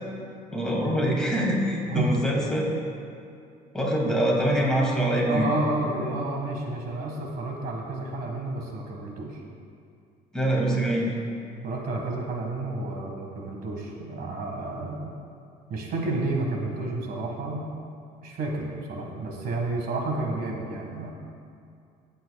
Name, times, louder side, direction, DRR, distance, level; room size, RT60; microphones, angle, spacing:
voice 1, 0.5-2.6 3.7-5.5 10.3-11.1, right 1 dB, 5° left, -4 dB, 2.4 m, -24 dB
voice 2, 1.8-2.2 5.3-9.4 11.6-15.2 15.7-17.7 18.2-21.1, right 2 dB, 65° right, 0 dB, 1.8 m, -30 dB
16.5 x 7.6 x 2.4 m, 2.4 s
cardioid pair, 110°, 17 cm